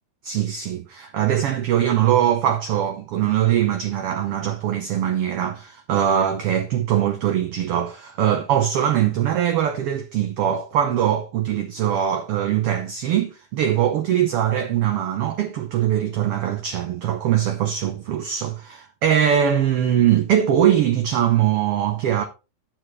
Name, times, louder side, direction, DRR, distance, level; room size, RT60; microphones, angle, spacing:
voice 1, 0.2-22.2, right 10 dB, 65° right, 1.6 m, -21 dB
10.0 x 7.2 x 3.2 m
omnidirectional pair, 3.3 m